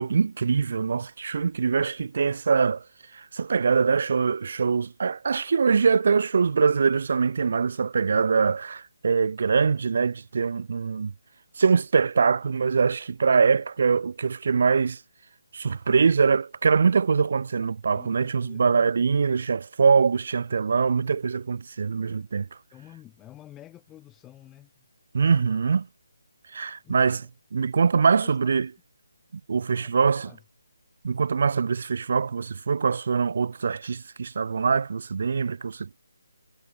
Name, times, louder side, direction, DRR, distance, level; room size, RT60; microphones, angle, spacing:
voice 1, 0.0-2.8 3.1-11.1 11.6-15.0 15.5-22.5 25.1-25.9 26.5-27.2 27.5-28.7 29.3-30.3 31.0-36.0, right 5 dB, 50° right, 0.6 m, -23 dB
voice 2, 17.9-18.9 22.7-24.8 26.8-27.3 28.1-28.5 29.5-30.4, left 13 dB, 10° left, 4.5 m, -50 dB
hypercardioid pair, 170°, 0 cm